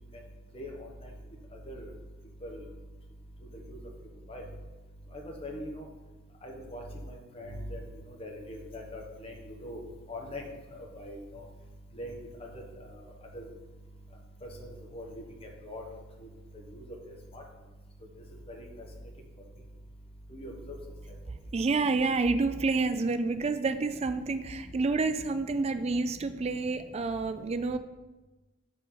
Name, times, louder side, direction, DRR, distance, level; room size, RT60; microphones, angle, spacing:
voice 1, 5.4-5.8 6.4-6.8 7.3-7.8 8.2-9.3 9.6-9.8 10.1-10.4 11.0-11.4 12.0-12.1 13.3-13.4 14.9-15.0 15.6-15.8 17.3-17.4 20.3-20.5 21.8-21.9, left 1 dB, 30° left, 0 dB, 1.1 m, -40 dB
voice 2, 21.5-27.8, right 3 dB, 35° right, 10 dB, 0.4 m, -29 dB
5.8 x 4.9 x 5.6 m, 1.2 s
head